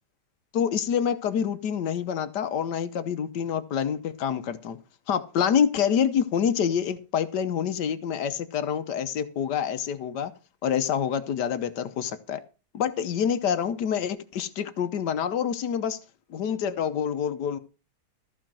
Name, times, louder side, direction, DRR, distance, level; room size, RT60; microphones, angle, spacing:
voice 1, 0.5-4.8 5.1-10.3 10.6-12.4 12.7-16.0 16.3-17.6, left 8 dB, 85° left, 1.5 m, -27 dB
14.0 x 5.1 x 7.5 m
omnidirectional pair, 1.8 m